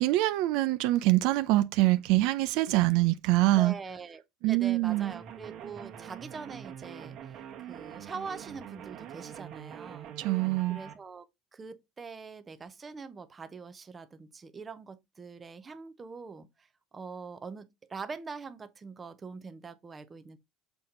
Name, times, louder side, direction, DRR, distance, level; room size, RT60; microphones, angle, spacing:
voice 1, 0.0-3.7 4.4-5.1 10.2-10.8, right 18 dB, 65° right, 0.5 m, -25 dB
voice 2, 3.5-10.1 10.7-11.3 11.5-16.7 16.9-20.4, right 5 dB, 15° right, 0.8 m, -43 dB
sound 1, 4.9-10.9, right 9 dB, 40° right, 1.2 m, -44 dB
7.0 x 4.3 x 3.8 m
cardioid pair, 160°, 0 cm